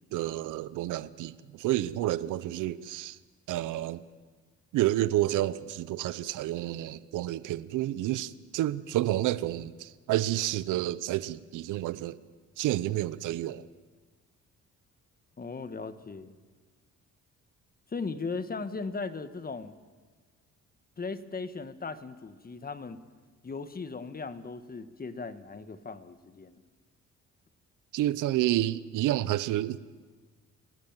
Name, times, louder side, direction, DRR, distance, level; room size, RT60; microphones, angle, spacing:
voice 1, 0.1-3.2 3.5-4.0 4.7-12.2 12.6-13.7 27.9-29.8, right 14 dB, 90° right, 17 dB, 0.9 m, -29 dB
voice 2, 15.4-16.4 17.9-19.7 21.0-23.0 23.4-26.6, left 4 dB, 30° left, 11 dB, 1.6 m, -37 dB
29.5 x 19.0 x 7.5 m, 1.4 s
cardioid pair, 90°, 30 cm